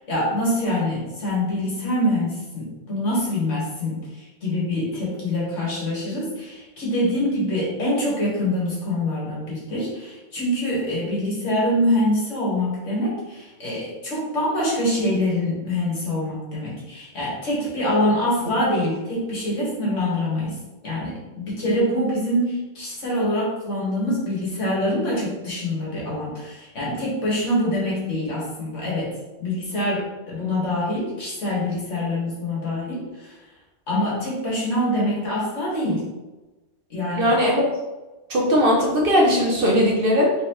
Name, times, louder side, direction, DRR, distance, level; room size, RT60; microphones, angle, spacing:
voice 1, 0.1-20.6 20.8-29.1 29.4-33.4 33.9-36.0 36.9-37.4, left 1 dB, 70° left, -6 dB, 2.0 m, -25 dB
voice 2, 37.2-37.6 38.3-40.3, equal, 50° right, -2 dB, 0.9 m, -19 dB
4.1 x 4.0 x 3.0 m, 1.1 s
omnidirectional pair, 1.3 m